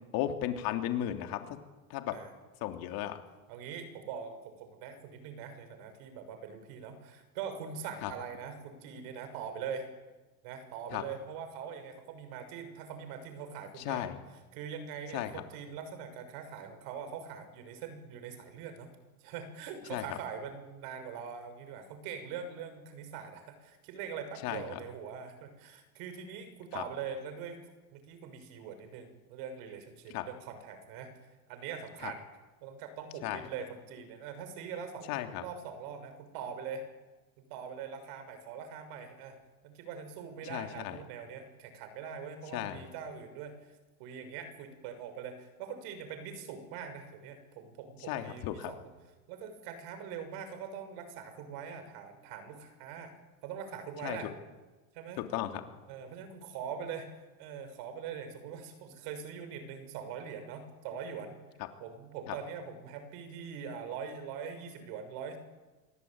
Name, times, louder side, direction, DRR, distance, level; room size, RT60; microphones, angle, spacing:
voice 1, 0.1-1.5 1.9-2.2 2.6-3.2 8.0-8.1 10.9-11.0 13.8-14.2 15.1-15.4 19.9-20.0 24.4-24.8 26.7-26.8 30.1-30.2 32.0-32.1 33.2-33.5 35.1-35.4 40.5-41.0 42.5-42.9 48.1-48.7 54.0-54.2 55.2-55.6, left 12 dB, 50° left, 6 dB, 3.4 m, -35 dB
voice 2, 3.5-9.9 10.4-14.1 14.5-18.9 19.2-27.6 27.9-31.1 31.5-32.2 32.6-35.1 35.4-36.8 37.5-39.4 39.6-43.5 44.0-48.9 49.3-53.1 53.4-54.3 54.9-55.2 55.9-57.1 57.4-61.4 61.8-65.4, right 7 dB, 55° right, 9 dB, 6.5 m, -42 dB
27.5 x 23.5 x 9.0 m, 1.2 s
supercardioid pair, 135°, 44 cm